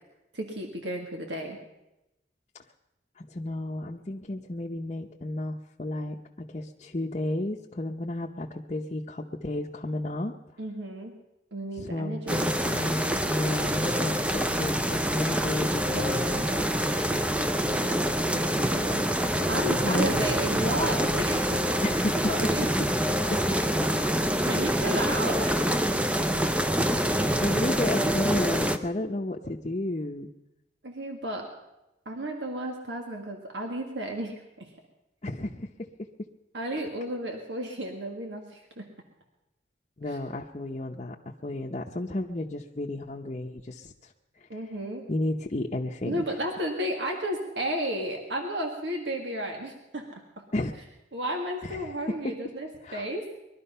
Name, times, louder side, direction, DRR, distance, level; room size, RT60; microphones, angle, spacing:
voice 1, 0.3-1.6 10.6-11.1 11.5-12.5 15.9-16.7 19.5-21.7 22.3-22.6 24.4-25.8 27.0-27.4 30.8-31.5 32.1-34.7 36.5-38.9 44.5-45.0 46.0-50.1 51.1-53.3, right 1 dB, 85° right, 2 dB, 1.9 m, -33 dB
voice 2, 3.2-10.4 11.8-16.3 17.6-19.5 19.8-20.2 21.8-22.3 23.3-23.9 24.9-25.0 26.1-26.3 27.4-30.3 35.2-35.9 40.0-41.2 41.4-44.1 44.5-44.6 45.1-46.2 50.5-50.7 51.6-52.4 52.8-53.1, left 1 dB, 40° left, -2 dB, 0.8 m, -33 dB
sound 1, 12.3-28.8, equal, 5° right, 0.6 m, -26 dB
21.0 x 12.5 x 5.6 m, 0.94 s
head